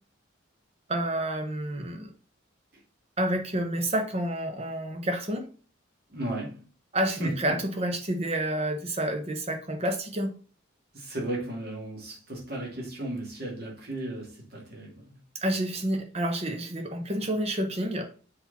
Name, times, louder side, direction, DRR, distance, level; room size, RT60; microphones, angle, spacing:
voice 1, 0.9-2.1 3.2-5.5 6.9-10.3 15.4-18.1, right 1 dB, 30° right, 1.0 m, -29 dB
voice 2, 6.1-6.6 7.2-7.6 10.9-15.2, right 1 dB, 50° right, 2.5 m, -35 dB
6.9 x 4.2 x 4.2 m
head